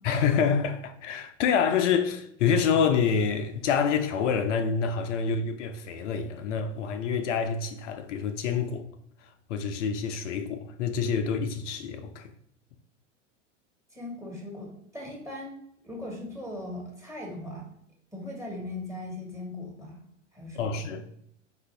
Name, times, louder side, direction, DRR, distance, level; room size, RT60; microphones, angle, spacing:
voice 1, 0.0-8.8 9.5-12.3 20.5-21.0, left 6 dB, 75° left, 0.6 m, -27 dB
voice 2, 13.9-15.6 15.8-17.7 18.1-20.0 20.3-20.9, left 1 dB, 10° right, 1.4 m, -39 dB
5.0 x 2.5 x 3.3 m
hypercardioid pair, 95°, 37 cm